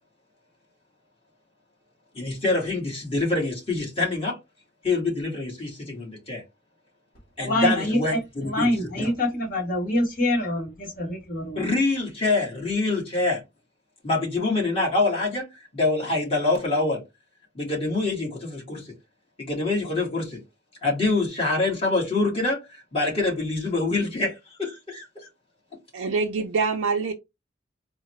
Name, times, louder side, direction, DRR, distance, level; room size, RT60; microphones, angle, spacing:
voice 1, 2.1-4.4 4.8-6.4 7.4-8.7 9.0-9.1 11.5-13.4 14.0-17.0 17.5-18.9 19.4-20.4 20.8-25.3, left 3 dB, 30° left, 1.6 m, -25 dB
voice 2, 7.4-8.2 8.4-11.7, left 1 dB, 45° left, 1.3 m, -25 dB
voice 3, 25.9-27.1, right 4 dB, 85° right, 0.4 m, -25 dB
3.8 x 2.1 x 3.1 m
head